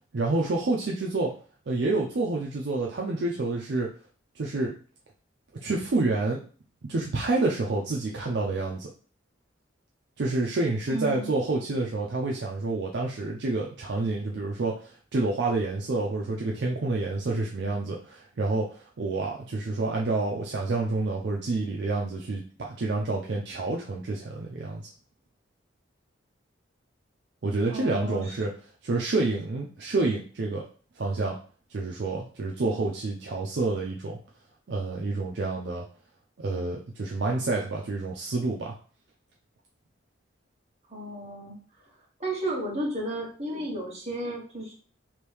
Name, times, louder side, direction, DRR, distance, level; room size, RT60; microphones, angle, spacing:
voice 1, 0.1-1.3 1.7-3.9 4.4-4.7 5.6-6.4 6.8-8.9 10.2-24.9 27.4-28.5 28.8-30.6 31.0-31.4 31.7-34.2 34.7-35.9 36.4-38.7, right 3 dB, 60° right, -1 dB, 0.5 m, -28 dB
voice 2, 10.9-11.3 27.7-28.3 40.9-41.5 42.2-44.7, right 1 dB, 35° right, -4 dB, 1.2 m, -33 dB
3.0 x 2.6 x 3.4 m, 0.40 s
head